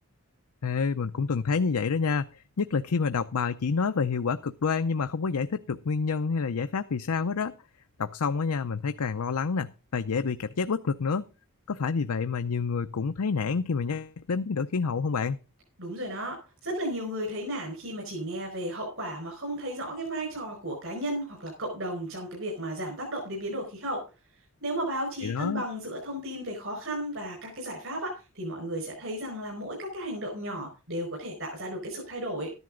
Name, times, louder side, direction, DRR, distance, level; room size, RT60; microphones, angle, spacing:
voice 1, 0.6-7.5 8.0-11.3 11.7-15.4 25.2-25.6, left 5 dB, 85° left, 9 dB, 0.6 m, -28 dB
voice 2, 15.8-24.0 24.6-32.5, right 1 dB, 60° right, 0 dB, 5.1 m, -34 dB
13.5 x 11.0 x 3.8 m, 0.32 s
head